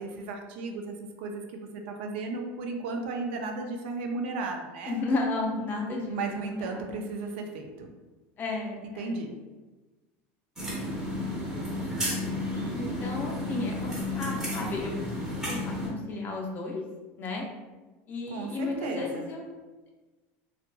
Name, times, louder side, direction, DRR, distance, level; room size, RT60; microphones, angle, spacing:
voice 1, 0.0-5.0 6.1-7.9 9.0-9.3 18.3-19.3, right 3 dB, 85° right, 3 dB, 0.4 m, -35 dB
voice 2, 4.9-7.0 8.4-9.2 12.7-16.8 17.2-17.5 18.1-19.6, left 3 dB, 30° left, 0 dB, 0.4 m, -33 dB
sound 1, 10.6-15.9, left 1 dB, 10° right, 0.7 m, -32 dB
2.7 x 2.4 x 2.3 m, 1.2 s
supercardioid pair, 140°, 6 cm